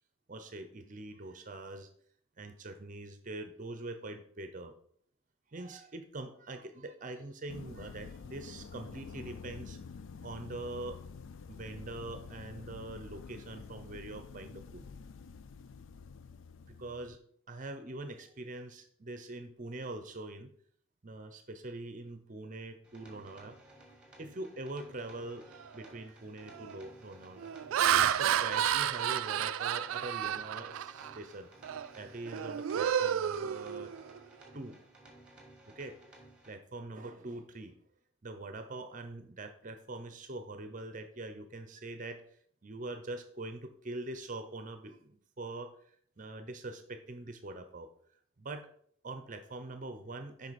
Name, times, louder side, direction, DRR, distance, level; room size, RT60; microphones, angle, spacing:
voice 1, 0.3-1.9 2.4-4.7 5.5-9.8 10.2-11.0 11.5-14.9 16.8-17.2 17.5-20.5 21.0-23.6 24.2-25.5 25.7-27.5 27.9-31.5 31.9-33.9 34.5-34.8 35.7-36.0 36.4-37.7 38.2-42.2 42.6-47.9 48.4-48.7 49.0-50.5, right 2 dB, 40° right, 8 dB, 0.7 m, -43 dB
sound 1, 7.5-17.2, left 5 dB, 65° left, 0.4 m, -48 dB
sound 2, 22.8-36.5, right 1 dB, 5° right, 1.9 m, -57 dB
Laughter, 25.6-25.9 26.5-26.8 27.4-31.2 31.6-31.9 32.3-34.2, right 9 dB, 80° right, 0.3 m, -31 dB
7.7 x 5.4 x 4.2 m, 0.62 s
head